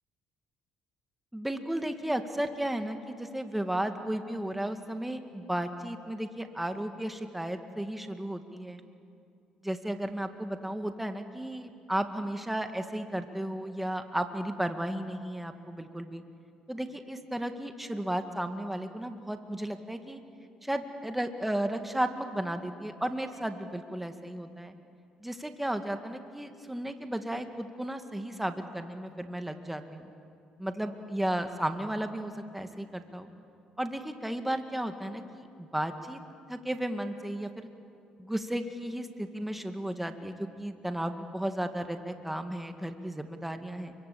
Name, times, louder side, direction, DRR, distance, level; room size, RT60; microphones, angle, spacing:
voice 1, 1.3-8.8 9.6-16.2 16.7-20.2 20.6-24.7 25.2-30.0 30.6-33.3 33.8-36.2 36.5-37.7 38.2-43.9, right 1 dB, 5° right, 7 dB, 2.0 m, -34 dB
29.5 x 23.0 x 8.6 m, 2.5 s
supercardioid pair, 80°, 3 cm